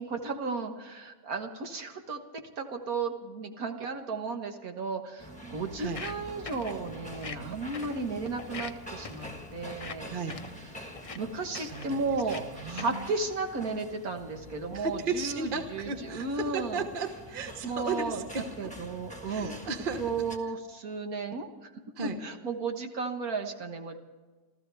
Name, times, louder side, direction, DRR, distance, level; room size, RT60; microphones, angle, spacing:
voice 1, 0.0-10.1 11.2-16.8 17.6-18.2 18.6-19.6 20.0-21.7 22.2-24.0, right 4 dB, 70° right, 4 dB, 1.8 m, -34 dB
sound 1, 5.2-20.4, equal, 5° left, 1.2 m, -46 dB
Walk footsteps, 5.8-13.1, left 4 dB, 35° left, 0.6 m, -45 dB
voice 2, 10.1-10.4 11.5-12.0 12.6-13.0 14.7-18.7 19.2-20.0 22.0-22.1, right 4 dB, 35° right, 6 dB, 1.4 m, -35 dB
28.5 x 14.0 x 3.4 m, 1.3 s
omnidirectional pair, 1.6 m